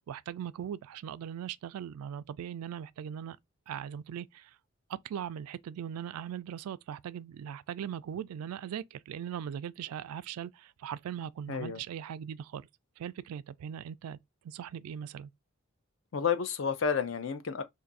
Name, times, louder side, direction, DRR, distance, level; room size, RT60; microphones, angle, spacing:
voice 1, 0.1-3.4 3.7-4.6 4.9-12.7 13.0-14.2 14.4-15.3, right 9 dB, 85° right, 0.3 m, -39 dB
voice 2, 11.5-11.8 16.1-17.6, left 6 dB, 60° left, 0.5 m, -30 dB
2.6 x 2.4 x 3.9 m
head